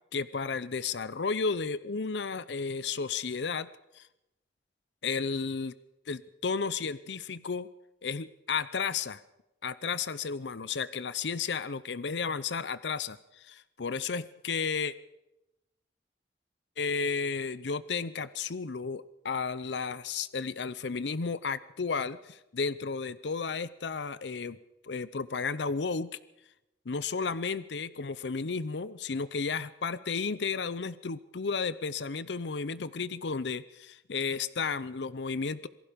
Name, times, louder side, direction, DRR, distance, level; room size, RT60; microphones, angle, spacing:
voice 1, 0.1-3.7 3.9-4.0 5.0-5.7 6.1-7.7 8.0-9.2 9.6-14.9 16.8-24.6 24.8-26.1 26.9-35.7, left 5 dB, 75° left, 16 dB, 0.7 m, -33 dB
27.0 x 18.5 x 5.2 m, 0.90 s
head